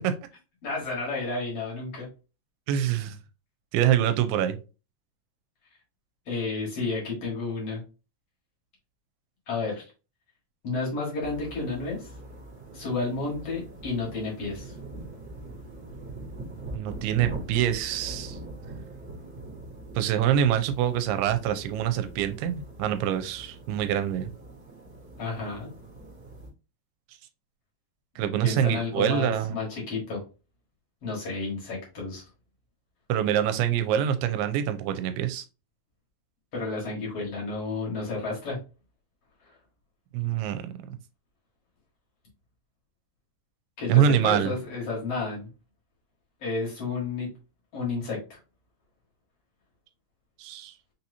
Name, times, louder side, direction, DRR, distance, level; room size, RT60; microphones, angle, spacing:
voice 1, 0.6-2.1 6.3-7.8 9.5-9.9 10.6-12.1 12.7-14.8 25.2-25.7 28.2-30.2 31.0-32.2 36.5-38.6 39.4-39.5 43.8-45.5 46.4-47.3 47.7-48.4, left 3 dB, 50° left, -3 dB, 1.8 m, -31 dB
voice 2, 2.7-3.2 3.7-4.6 16.7-18.4 20.0-24.3 28.2-29.6 33.1-35.4 40.1-41.0 43.9-44.5 50.4-50.8, right 10 dB, 85° right, 9 dB, 2.5 m, -25 dB
sound 1, 11.2-26.5, right 2 dB, 45° right, 0.9 m, -42 dB
5.8 x 2.8 x 2.7 m, 0.32 s
omnidirectional pair, 4.5 m